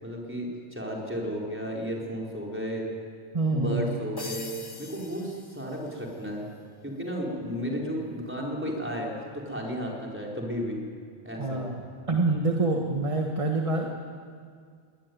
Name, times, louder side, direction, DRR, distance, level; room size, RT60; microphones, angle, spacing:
voice 1, 0.0-2.9 3.5-4.5 4.8-6.5 6.8-10.8 11.2-11.6, equal, 10° right, -2 dB, 4.7 m, -33 dB
voice 2, 3.3-4.0 11.4-11.8 12.1-13.9, right 3 dB, 30° right, 2 dB, 1.7 m, -26 dB
sound 1, 4.2-6.2, left 2 dB, 25° left, 1.0 m, -43 dB
22.5 x 19.5 x 9.5 m, 2.1 s
omnidirectional pair, 1.1 m